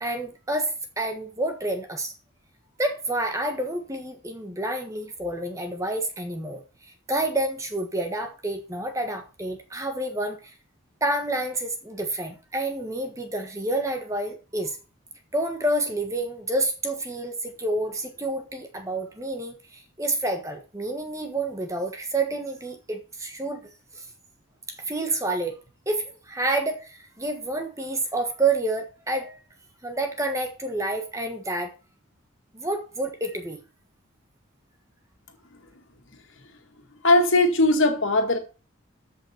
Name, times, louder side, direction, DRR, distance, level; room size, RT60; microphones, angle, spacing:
voice 1, 0.0-2.1 2.8-10.5 11.0-14.8 15.3-24.1 24.7-25.6 25.8-29.4 29.8-31.7 32.5-33.6, right 2 dB, 15° right, 1.4 m, -29 dB
voice 2, 37.0-38.4, left 2 dB, 70° left, 2.1 m, -19 dB
14.0 x 5.8 x 4.5 m
head